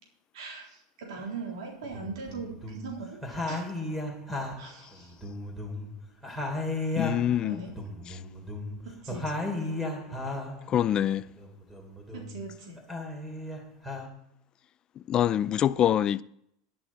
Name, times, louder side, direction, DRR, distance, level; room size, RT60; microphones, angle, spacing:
voice 1, 0.3-3.2 3.5-3.6 4.6-5.1 7.4-7.7 9.0-9.3 12.1-12.8, right 4 dB, 75° right, 3.6 m, -40 dB
sound 1, 1.2-1.3 1.8-2.9 3.2-6.0 6.2-10.6 11.1-12.4 12.8-14.1, left 2 dB, 5° right, 2.9 m, -35 dB
voice 2, 7.0-7.6 8.1-8.2 10.7-11.3 15.0-16.2, left 10 dB, 30° left, 0.4 m, -25 dB
11.5 x 11.5 x 4.3 m
supercardioid pair, 135°, 3 cm